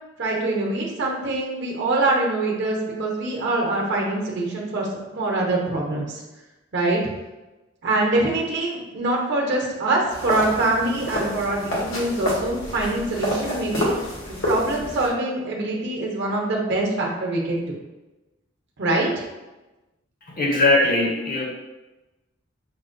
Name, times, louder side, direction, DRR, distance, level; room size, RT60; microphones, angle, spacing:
voice 1, 0.2-6.2 6.7-7.0 7.8-17.7 18.8-19.1, right 2 dB, 60° right, -2 dB, 0.8 m, -24 dB
sound 1, 10.1-15.1, equal, 80° left, 1.1 m, -28 dB
voice 2, 20.2-21.5, left 2 dB, 45° left, -1 dB, 0.7 m, -20 dB
5.9 x 2.1 x 2.5 m, 1.1 s
head